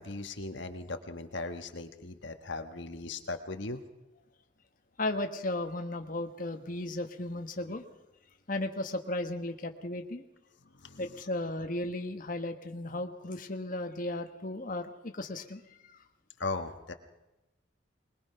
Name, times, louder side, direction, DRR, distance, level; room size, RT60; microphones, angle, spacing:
voice 1, 0.0-3.8 10.8-11.0 16.4-16.9, left 3 dB, 70° left, 7 dB, 1.4 m, -38 dB
voice 2, 5.0-7.8 8.5-10.2 11.0-16.0, left 1 dB, 45° left, 5 dB, 1.4 m, -35 dB
22.0 x 21.5 x 5.7 m, 1.0 s
head